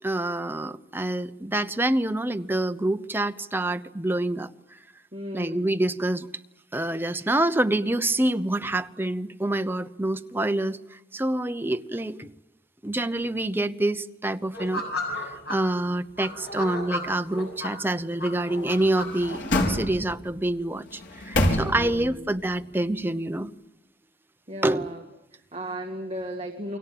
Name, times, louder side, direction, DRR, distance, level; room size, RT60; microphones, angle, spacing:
voice 1, 0.0-4.5 5.3-6.3 6.7-12.3 12.8-14.8 15.2-23.5 24.6-24.9, right 1 dB, 10° right, 9 dB, 0.9 m, -27 dB
voice 2, 5.1-5.7 21.7-22.3 24.5-25.0 25.3-26.8, equal, 35° right, 2 dB, 2.1 m, -35 dB
sound 1, 14.5-15.6 16.2-17.7 18.2-19.6, left 2 dB, 60° left, 7.4 m, -33 dB
sound 2, 18.6-20.3 20.9-22.2 22.5-22.6, left 1 dB, 80° left, 4.7 m, -27 dB
29.5 x 23.0 x 7.8 m, 0.93 s
head